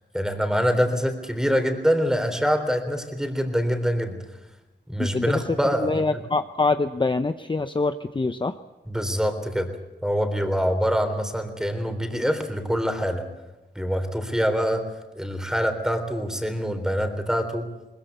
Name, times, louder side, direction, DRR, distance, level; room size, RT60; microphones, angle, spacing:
voice 1, 0.1-4.2 4.9-6.1 8.9-9.7 10.0-13.2 13.8-14.8 15.2-17.7, equal, 5° right, 7 dB, 3.6 m, -25 dB
voice 2, 5.0-8.5, left 3 dB, 25° left, 9 dB, 0.7 m, -25 dB
22.0 x 20.5 x 8.1 m, 1.0 s
wide cardioid pair, 80°, 19 cm